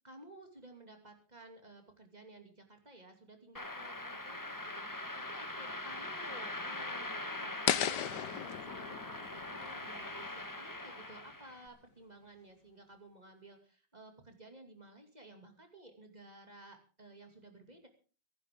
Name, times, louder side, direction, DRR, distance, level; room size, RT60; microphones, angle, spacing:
voice 1, 0.0-17.9, right 2 dB, 20° right, 5 dB, 2.7 m, -55 dB
sound 1, 3.5-11.6, left 2 dB, 10° left, 1.1 m, -42 dB
sound 2, 7.7-10.7, left 10 dB, 65° left, 1.4 m, -36 dB
24.5 x 11.5 x 3.7 m, 0.37 s
omnidirectional pair, 2.2 m